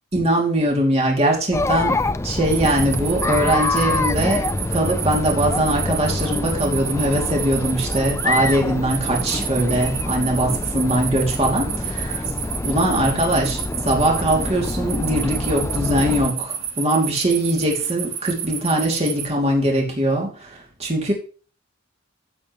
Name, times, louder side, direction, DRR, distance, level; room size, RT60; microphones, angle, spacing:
voice 1, 0.1-2.0 2.2-12.2 12.7-21.1, right 1 dB, 30° right, -1 dB, 2.9 m, -21 dB
Chatter, 1.5-16.3, left 2 dB, 15° left, 0.4 m, -26 dB
sound 1, 2.5-19.3, right 9 dB, 85° right, 1.6 m, -31 dB
15.5 x 7.3 x 3.2 m, 0.37 s
head